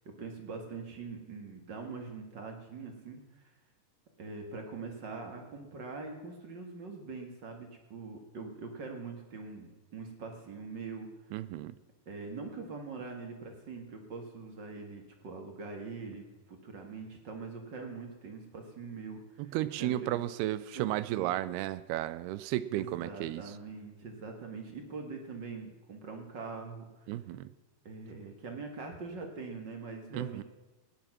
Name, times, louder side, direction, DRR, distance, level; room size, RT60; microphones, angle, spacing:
voice 1, 0.2-3.5 4.2-11.1 12.1-16.2 16.5-20.2 20.7-21.3 22.7-27.1 27.8-30.4, right 4 dB, 40° right, 4 dB, 1.7 m, -43 dB
voice 2, 11.3-11.8 19.4-23.4 27.1-27.5 30.1-30.4, right 14 dB, 90° right, 15 dB, 2.6 m, -33 dB
17.5 x 10.0 x 6.0 m, 1.1 s
omnidirectional pair, 4.4 m